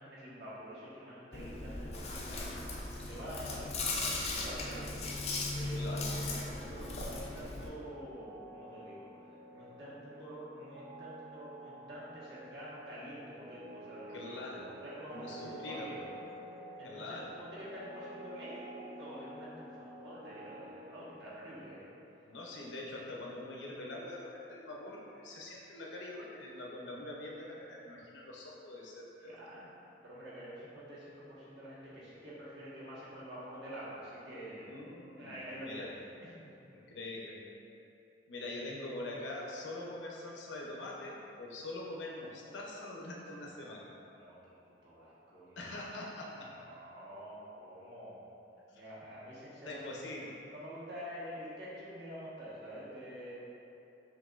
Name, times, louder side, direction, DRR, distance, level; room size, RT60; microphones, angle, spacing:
voice 1, 0.0-2.5 3.1-4.9 5.5-9.0 9.5-14.4 14.8-15.4 15.7-15.9 16.8-21.9 29.2-29.6 30.0-34.7 35.2-35.9 36.2-36.3 44.2-44.5 44.8-45.7 46.5-48.2 48.7-49.9 50.5-53.3, equal, 70° right, -9 dB, 1.2 m, -47 dB
Chewing mastication, 1.3-7.7, left 2 dB, 35° left, 0.4 m, -37 dB
sound 1, 4.9-21.5, right 1 dB, 35° right, 0.5 m, -51 dB
voice 2, 5.7-6.1 14.1-14.7 15.1-15.9 16.8-17.3 22.2-29.7 34.7-35.9 36.7-37.4 38.3-43.9 45.6-46.5 48.7-48.8 49.6-50.3, left 2 dB, 85° left, -3 dB, 0.7 m, -44 dB
5.7 x 2.6 x 2.5 m, 2.8 s
head